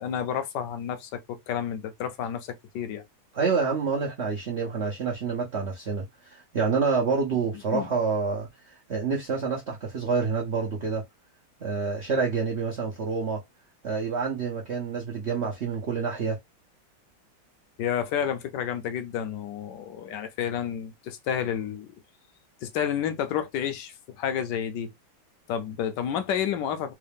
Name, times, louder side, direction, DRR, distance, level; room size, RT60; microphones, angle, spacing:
voice 1, 0.0-3.0 7.7-7.9 17.8-21.9 22.6-24.9 25.5-26.9, left 9 dB, 70° left, 1.1 m, -30 dB
voice 2, 3.3-11.0 11.6-13.4 13.8-16.4, right 5 dB, 75° right, 0.6 m, -28 dB
3.7 x 2.3 x 3.4 m
omnidirectional pair, 2.3 m